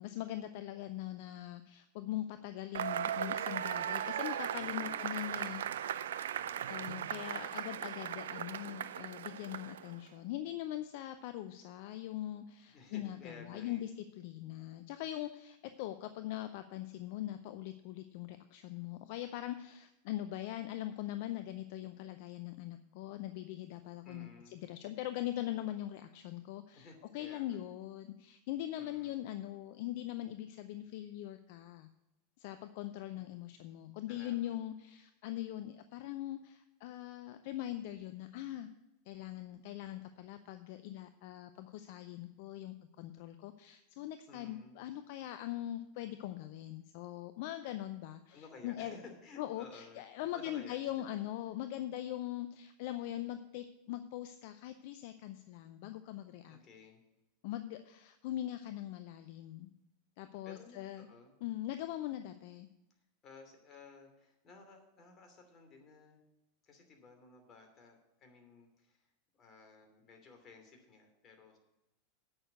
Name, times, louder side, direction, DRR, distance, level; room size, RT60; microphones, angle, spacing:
voice 1, 0.0-5.6 6.7-31.9 32.4-38.7 39.1-49.0 49.4-56.6 57.4-59.7 60.2-61.1 61.4-62.7, left 13 dB, 60° left, 10 dB, 0.5 m, -42 dB
Cheering / Applause / Crowd, 2.7-10.0, right 10 dB, 75° right, 0.4 m, -38 dB
voice 2, 4.6-5.8 6.3-6.9 12.7-13.9 24.0-24.6 26.7-27.6 28.8-29.1 33.2-33.4 34.1-34.6 44.3-44.8 48.3-50.0 50.3-50.8 56.5-57.0 60.4-61.3 63.2-66.2 66.6-69.0 69.3-71.6, left 3 dB, 35° left, 4 dB, 2.8 m, -55 dB
8.7 x 6.4 x 8.1 m, 0.93 s
hypercardioid pair, 90°, 0 cm